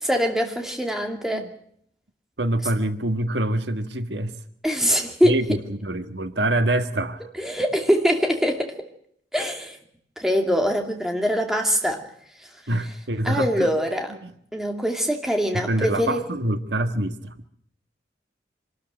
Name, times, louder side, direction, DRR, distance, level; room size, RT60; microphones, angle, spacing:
voice 1, 0.0-1.5 4.6-5.4 7.3-8.9 9.3-9.8 10.2-12.0 13.2-14.1 14.5-16.2, equal, ahead, 3 dB, 2.5 m, -23 dB
voice 2, 2.4-4.3 5.2-7.3 12.7-13.7 14.2-14.3 15.5-17.3, right 1 dB, 80° right, 9 dB, 1.6 m, -25 dB
25.0 x 13.0 x 9.0 m, 0.67 s
head